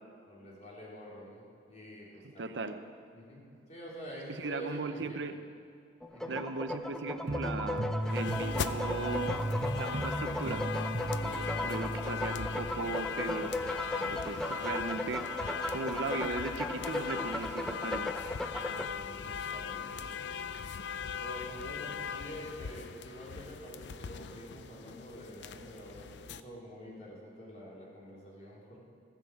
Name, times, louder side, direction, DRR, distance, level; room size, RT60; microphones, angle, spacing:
voice 1, 0.3-2.7 3.1-5.2 6.1-6.4 14.0-14.4 18.6-20.1 21.2-28.8, equal, 40° left, -5 dB, 3.8 m, -47 dB
voice 2, 2.4-2.8 4.3-5.4 6.3-9.4 9.8-10.6 11.2-13.6 14.0-18.1, right 3 dB, 75° right, 9 dB, 0.7 m, -38 dB
sound 1, 6.0-18.9, left 1 dB, 5° left, 0.5 m, -37 dB
sound 2, 7.3-12.6, right 1 dB, 40° right, 1.1 m, -36 dB
sound 3, 8.0-26.4, left 7 dB, 70° left, 0.5 m, -40 dB
15.0 x 7.1 x 7.4 m, 2.5 s
head